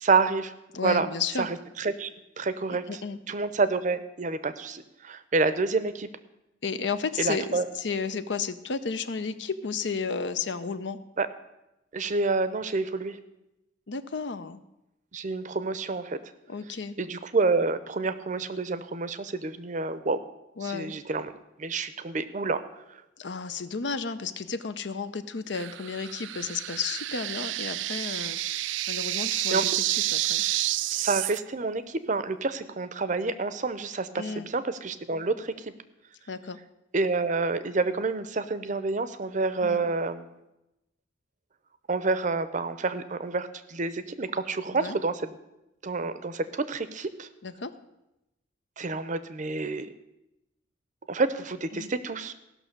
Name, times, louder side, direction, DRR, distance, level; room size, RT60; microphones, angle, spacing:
voice 1, 0.0-0.5 0.8-1.1 1.4-2.1 2.4-2.8 3.3-6.1 7.2-7.6 11.2-11.3 11.9-13.2 15.1-16.2 17.0-20.2 20.6-21.3 21.6-22.6 29.5-29.8 30.9-35.7 36.9-40.2 41.9-45.3 45.8-47.3 48.8-49.9 51.1-52.3, right 3 dB, 40° right, 13 dB, 0.6 m, -28 dB
voice 2, 0.7-1.5 2.7-3.2 6.6-11.0 13.9-14.6 16.5-17.0 20.6-21.0 23.2-28.4 28.9-30.4 34.2-34.5 36.3-36.6 39.6-39.9 44.7-45.0 47.4-47.7 51.7-51.9, left 5 dB, 65° left, 12 dB, 0.7 m, -33 dB
sound 1, 25.5-31.4, right 15 dB, 75° right, 0.3 m, -29 dB
16.0 x 6.1 x 6.6 m, 0.93 s
head